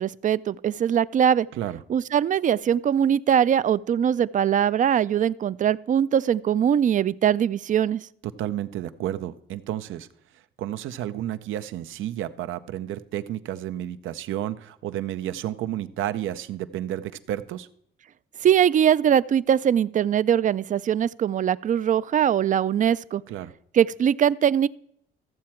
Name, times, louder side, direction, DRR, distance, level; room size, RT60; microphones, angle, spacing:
voice 1, 0.0-1.5 1.9-8.0 18.4-23.2 23.7-24.7, right 9 dB, 40° right, 19 dB, 0.4 m, -21 dB
voice 2, 8.2-10.1 10.6-17.7 23.3-23.5, right 12 dB, 85° right, 12 dB, 0.6 m, -31 dB
14.0 x 7.5 x 4.4 m, 0.71 s
cardioid pair, 90°, 20 cm